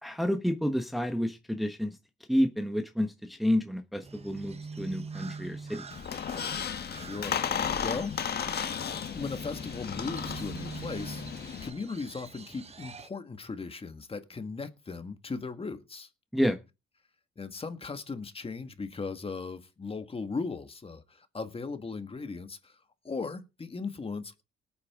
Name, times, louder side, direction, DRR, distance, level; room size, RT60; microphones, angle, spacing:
voice 1, 0.0-2.0 2.3-5.8 16.3-16.6, equal, ahead, 1.3 m, -29 dB
Crow, 4.0-13.1, right 4 dB, 30° right, 1.0 m, -44 dB
Squeak, 5.9-11.7, left 7 dB, 55° left, 1.5 m, -34 dB
voice 2, 6.9-8.2 9.1-11.3 11.6-16.1 17.4-24.4, left 4 dB, 30° left, 1.9 m, -38 dB
19.0 x 8.9 x 3.8 m
cardioid pair, 90°, 20 cm